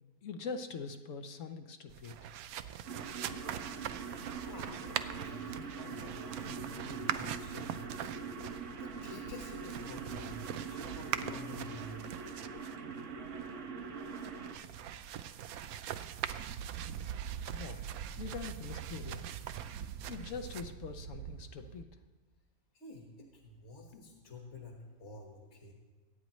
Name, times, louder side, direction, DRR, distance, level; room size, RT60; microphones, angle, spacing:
voice 1, 0.2-2.2 17.5-17.9 18.2-19.3 20.1-21.9, left 5 dB, 60° left, 7 dB, 1.0 m, -43 dB
sound 1, 1.9-21.8, right 10 dB, 70° right, 1.0 m, -42 dB
sound 2, 2.8-14.5, right 5 dB, 55° right, 1.2 m, -43 dB
voice 2, 4.4-8.1 8.7-12.1 22.7-25.7, left 2 dB, 45° left, 0 dB, 1.7 m, -49 dB
23.5 x 9.1 x 3.1 m, 1.3 s
omnidirectional pair, 1.7 m